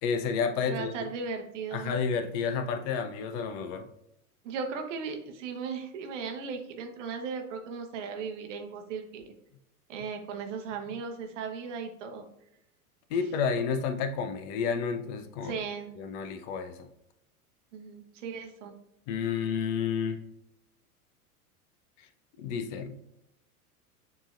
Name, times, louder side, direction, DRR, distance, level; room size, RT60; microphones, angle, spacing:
voice 1, 0.0-1.1 1.7-3.9 13.1-15.6 16.0-16.9 19.1-20.2 22.0-22.1 22.4-23.0, left 6 dB, 30° left, 8 dB, 0.4 m, -30 dB
voice 2, 0.7-2.0 4.4-9.2 9.9-12.2 15.4-15.9 17.7-18.7, right 5 dB, 55° right, 4 dB, 0.9 m, -37 dB
7.0 x 3.0 x 2.4 m, 0.82 s
figure-of-eight pair, 90°, 45 cm